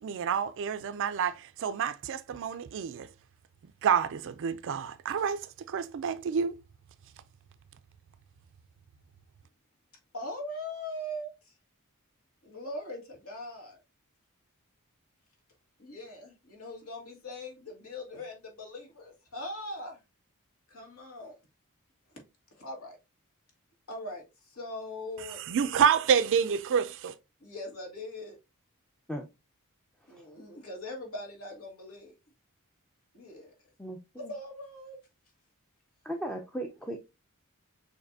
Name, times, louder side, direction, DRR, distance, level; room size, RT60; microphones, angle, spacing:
voice 1, 0.0-3.1 3.8-6.6 25.2-27.2, right 7 dB, 60° right, 0.3 m, -28 dB
voice 2, 10.1-11.5 12.4-13.8 15.8-20.0 20.7-21.4 22.5-23.0 23.9-25.4 27.4-28.4 30.1-32.2 33.1-33.5 34.2-35.0, left 1 dB, 75° left, 1.8 m, -41 dB
voice 3, 33.8-34.3 36.0-37.0, right 1 dB, 5° left, 0.4 m, -37 dB
6.4 x 2.6 x 2.6 m
head